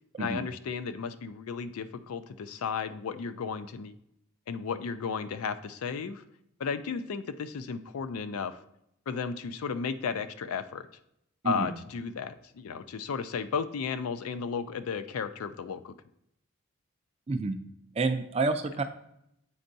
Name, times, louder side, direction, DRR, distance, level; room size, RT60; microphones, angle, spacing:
voice 1, 0.2-3.9 4.5-6.2 6.6-8.6 9.1-10.9 11.4-15.9, left 6 dB, 80° left, 12 dB, 0.4 m, -34 dB
voice 2, 17.3-17.6 18.0-18.8, right 3 dB, 25° right, 7 dB, 0.3 m, -28 dB
8.5 x 4.4 x 2.6 m, 0.78 s
head